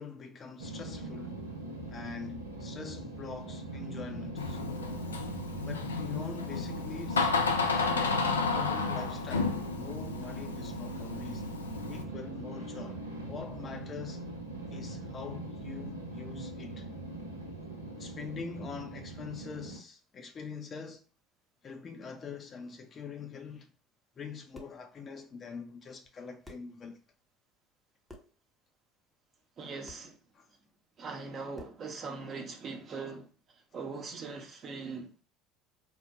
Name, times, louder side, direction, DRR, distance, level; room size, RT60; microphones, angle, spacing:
voice 1, 0.0-1.4 1.9-5.1 5.6-7.3 7.7-11.4 11.9-13.0 13.3-14.3 14.7-16.9 17.9-21.0 21.6-23.7 24.2-27.0 30.3-30.5, left 5 dB, 35° left, 0.6 m, -44 dB
sound 1, 0.6-19.8, right 2 dB, 90° right, 0.6 m, -41 dB
Door, 4.4-12.0, left 4 dB, 85° left, 0.3 m, -32 dB
sound 2, 24.5-24.9 26.0-26.1 26.4-26.8 28.1-28.4 29.9-30.1 31.5-31.9, left 1 dB, ahead, 0.9 m, -51 dB
voice 2, 29.6-30.2 31.0-33.3 33.7-35.2, right 4 dB, 40° right, 0.8 m, -41 dB
3.7 x 2.1 x 2.8 m
figure-of-eight pair, 65°, 0 cm